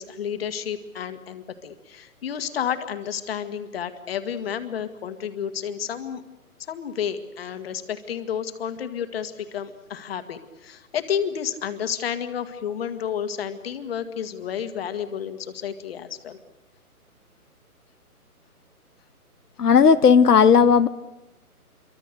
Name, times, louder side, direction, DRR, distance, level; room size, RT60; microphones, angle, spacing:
voice 1, 0.0-6.2 6.7-16.4, left 8 dB, 40° left, 9 dB, 1.8 m, -31 dB
voice 2, 19.6-20.9, left 6 dB, 85° left, 10 dB, 1.1 m, -15 dB
28.0 x 23.5 x 6.7 m, 0.99 s
hypercardioid pair, 155°, 45 cm